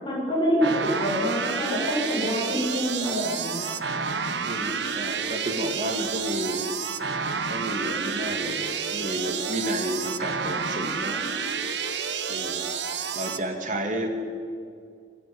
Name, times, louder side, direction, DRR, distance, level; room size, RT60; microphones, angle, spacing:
voice 1, 0.0-3.8, equal, 25° left, -5 dB, 7.3 m, -26 dB
sound 1, 0.6-13.4, right 6 dB, 70° right, 1.2 m, -30 dB
voice 2, 4.4-6.6 7.3-11.4 12.3-12.7 13.1-14.1, right 1 dB, 45° right, 4 dB, 2.3 m, -31 dB
20.0 x 13.5 x 9.5 m, 2.3 s
head